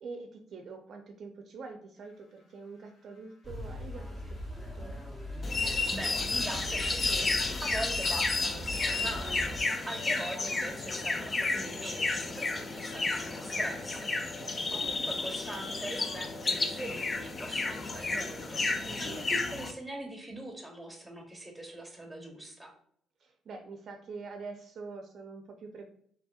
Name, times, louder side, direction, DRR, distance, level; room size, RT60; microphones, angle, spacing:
voice 1, 0.0-5.0 12.5-12.6 13.0-13.8 14.4-14.8 18.9-19.2 23.2-25.8, right 4 dB, 50° right, 4 dB, 0.5 m, -45 dB
sound 1, 2.0-19.3, left 2 dB, 65° left, 0.7 m, -50 dB
sound 2, 3.4-9.6, left 1 dB, 15° left, 0.8 m, -40 dB
sound 3, 5.4-19.7, left 3 dB, 30° left, 0.4 m, -32 dB
voice 2, 5.6-22.7, right 1 dB, 5° right, 2 dB, 1.0 m, -42 dB
4.3 x 3.3 x 2.3 m, 0.64 s
cardioid pair, 110°, 0 cm